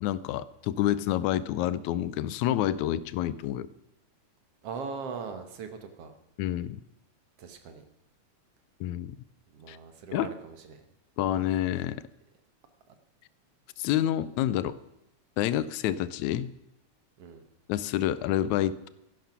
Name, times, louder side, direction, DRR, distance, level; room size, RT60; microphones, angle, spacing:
voice 1, 0.0-3.7 6.4-6.8 8.8-9.2 9.7-9.8 10.1-10.3 11.2-12.0 13.8-14.8 15.4-16.5 17.7-18.9, left 12 dB, 85° left, 17 dB, 1.9 m, -28 dB
voice 2, 4.6-6.1 7.4-7.8 9.5-10.8 17.2-17.5, right 5 dB, 60° right, 7 dB, 2.0 m, -40 dB
13.5 x 11.0 x 5.9 m, 0.88 s
omnidirectional pair, 3.3 m